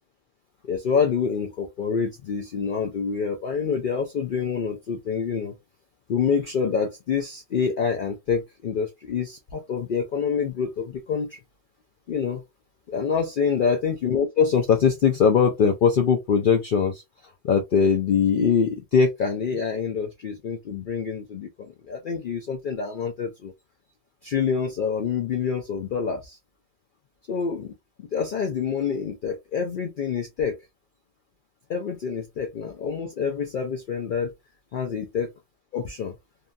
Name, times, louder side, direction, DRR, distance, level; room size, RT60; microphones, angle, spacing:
voice 1, 0.6-5.5 6.1-11.4 12.1-12.4 12.9-21.5 21.9-23.5 24.2-26.4 27.3-27.7 28.1-30.6 31.7-34.3 34.7-35.3 35.7-36.1, left 6 dB, 65° left, 0.5 m, -25 dB
2.8 x 2.2 x 2.4 m
omnidirectional pair, 1.3 m